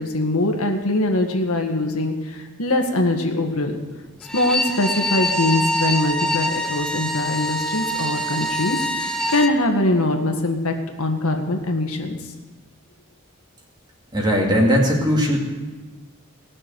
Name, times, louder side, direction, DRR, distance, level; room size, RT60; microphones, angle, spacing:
voice 1, 0.0-3.7 4.3-12.2, left 1 dB, 75° left, 4 dB, 1.8 m, -22 dB
Bowed string instrument, 4.2-9.6, equal, 5° left, 0.6 m, -25 dB
voice 2, 14.1-15.4, equal, 20° right, -1 dB, 2.5 m, -18 dB
19.0 x 6.5 x 8.0 m, 1.3 s
head